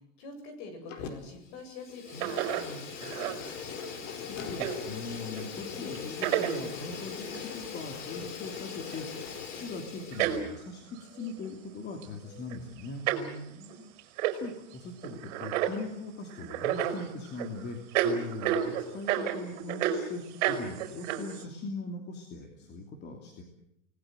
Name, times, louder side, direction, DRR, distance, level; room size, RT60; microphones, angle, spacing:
voice 1, 0.2-3.2 13.2-13.9, left 2 dB, 45° left, 8 dB, 7.7 m, -45 dB
Fire, 0.9-1.4 1.7-10.5, left 6 dB, 60° left, 4.8 m, -40 dB
sound 1, 2.2-2.7 3.0-3.3 3.8-3.9 4.5-4.8 5.4-5.5 5.9-6.6 7.3-7.4 8.4-8.6 8.9-9.0 10.0-10.5 11.0-11.5 12.0-12.1 12.4-12.8 13.1-13.3 13.6-13.7 14.0-14.4 14.7-14.8 15.0-15.8 16.3-17.5 17.9-20.0 20.4-21.4, right 10 dB, 60° right, 5.3 m, -30 dB
voice 2, 4.0-13.1 14.3-23.4, left 3 dB, 25° left, 3 dB, 2.9 m, -41 dB
28.5 x 19.5 x 7.8 m, 0.79 s
supercardioid pair, 160°, 41 cm